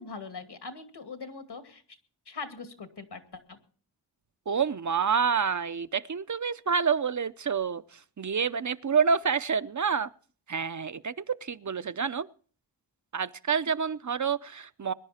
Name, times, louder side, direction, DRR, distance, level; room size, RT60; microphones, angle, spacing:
voice 1, 0.0-1.8 2.3-3.6, left 4 dB, 70° left, 7 dB, 2.3 m, -41 dB
voice 2, 4.5-10.1 10.5-12.3 13.1-14.9, right 6 dB, 45° right, 13 dB, 0.6 m, -28 dB
22.0 x 11.0 x 4.3 m, 0.43 s
wide cardioid pair, 65°, 41 cm